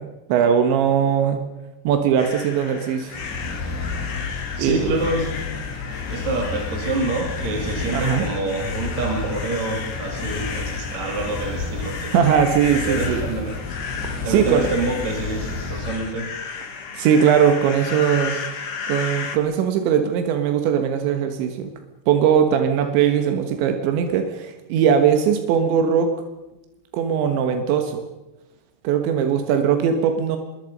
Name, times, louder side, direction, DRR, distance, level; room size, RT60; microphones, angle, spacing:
voice 1, 0.0-1.4 1.9-3.2 4.6-4.9 7.9-8.3 12.1-13.3 14.3-14.7 16.9-18.4 18.9-21.7 22.1-26.1 26.9-28.1 28.8-30.4, right 8 dB, 90° right, 6 dB, 3.7 m, -20 dB
sound 1, 2.2-19.4, left 5 dB, 45° left, 1.9 m, -34 dB
sound 2, 3.1-16.1, left 4 dB, 80° left, 5.8 m, -31 dB
voice 2, 4.6-5.6 6.1-12.1 12.9-13.5 14.2-16.3, right 2 dB, 45° right, 0 dB, 3.5 m, -27 dB
25.5 x 22.5 x 5.4 m, 1.0 s
omnidirectional pair, 5.1 m